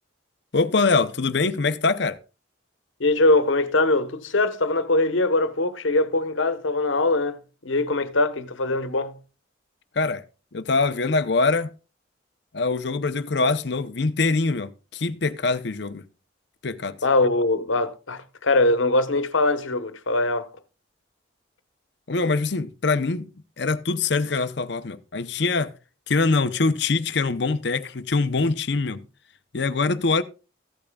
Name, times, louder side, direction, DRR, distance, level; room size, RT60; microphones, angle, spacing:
voice 1, 0.5-2.2 9.9-10.2 10.5-11.7 12.5-16.1 16.6-17.0 22.1-23.3 23.6-25.7 26.1-29.0 29.5-30.2, left 3 dB, 60° left, 0.7 m, -23 dB
voice 2, 3.0-9.2 17.0-20.5, left 2 dB, 80° left, 1.1 m, -22 dB
15.0 x 8.6 x 2.3 m
head